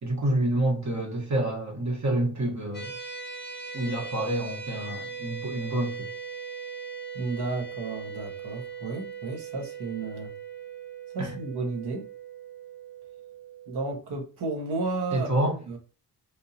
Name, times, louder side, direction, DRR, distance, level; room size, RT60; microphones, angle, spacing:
voice 1, 0.0-2.9 3.7-6.1 11.2-11.4 15.1-15.6, right 1 dB, 45° right, 1.3 m, -28 dB
sound 1, 2.7-13.9, right 6 dB, 25° left, 0.7 m, -40 dB
voice 2, 7.1-10.3 11.1-12.1 13.7-15.8, right 3 dB, 80° right, 1.3 m, -33 dB
3.6 x 2.6 x 2.7 m
cardioid pair, 90°, 40 cm